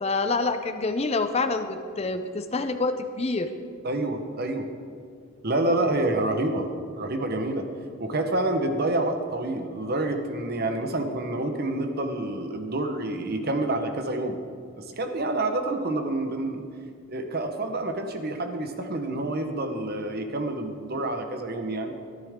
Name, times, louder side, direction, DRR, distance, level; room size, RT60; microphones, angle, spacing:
voice 1, 0.0-3.5, left 3 dB, 30° left, 9 dB, 0.5 m, -27 dB
voice 2, 3.8-4.7 5.4-7.7 8.0-14.4 14.8-16.7 17.1-21.9, right 2 dB, 50° right, 6 dB, 1.0 m, -28 dB
13.5 x 12.5 x 3.7 m, 2.3 s
head